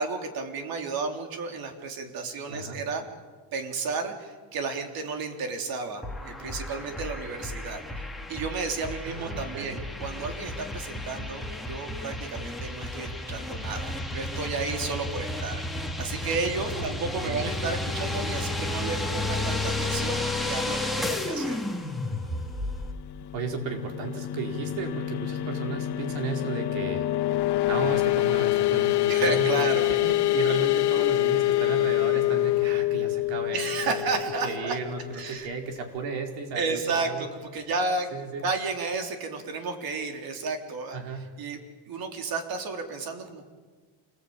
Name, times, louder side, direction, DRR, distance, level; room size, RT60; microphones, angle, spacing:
voice 1, 0.0-3.0 3.5-21.6 29.1-29.9 33.5-34.8 35.1-35.5 36.5-38.1 38.4-41.6 41.9-43.4, right 4 dB, 55° right, 4 dB, 3.7 m, -32 dB
voice 2, 2.5-2.8 9.1-9.8 16.7-17.5 23.3-27.1 27.7-34.1 34.4-37.4 38.1-38.5 40.9-41.3, right 4 dB, 85° right, 3 dB, 4.9 m, -34 dB
sound 1, 6.0-22.9, left 2 dB, ahead, 2.3 m, -32 dB
sound 2, 23.1-35.6, left 16 dB, 60° left, 1.4 m, -26 dB
28.0 x 20.0 x 8.9 m, 1.5 s
cardioid pair, 160°, 44 cm